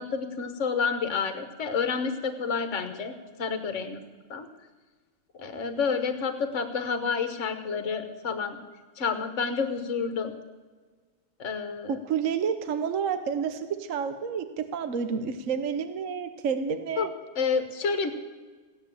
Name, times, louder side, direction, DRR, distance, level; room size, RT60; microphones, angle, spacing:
voice 1, 0.0-3.1 3.4-4.0 4.3-4.4 5.4-8.6 9.0-10.3 11.4-12.0 17.0-17.1 17.4-18.1, left 5 dB, 40° left, 8 dB, 1.3 m, -29 dB
voice 2, 11.9-17.1, right 6 dB, 55° right, 9 dB, 1.0 m, -29 dB
15.5 x 9.5 x 7.6 m, 1.4 s
omnidirectional pair, 2.2 m